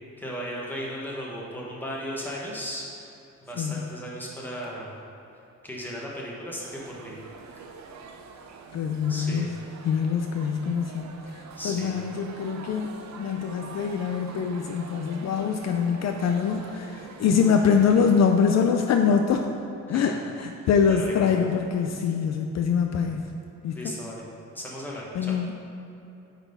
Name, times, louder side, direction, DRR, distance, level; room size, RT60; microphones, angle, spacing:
voice 1, 0.2-3.1 3.4-5.0 5.6-7.1 9.1-9.5 11.6-11.9 19.9-20.0 20.6-20.7 21.0-21.2 23.7-24.2 24.5-25.3, equal, 5° left, -4 dB, 1.2 m, -36 dB
sound 1, 6.6-18.3, right 5 dB, 65° right, 0.7 m, -45 dB
voice 2, 8.7-9.5 9.8-12.9 13.2-19.5 19.9-23.2 23.6-23.9 25.1-25.5, left 6 dB, 60° left, 4 dB, 0.4 m, -24 dB
8.9 x 4.2 x 5.3 m, 2.9 s
wide cardioid pair, 175°, 31 cm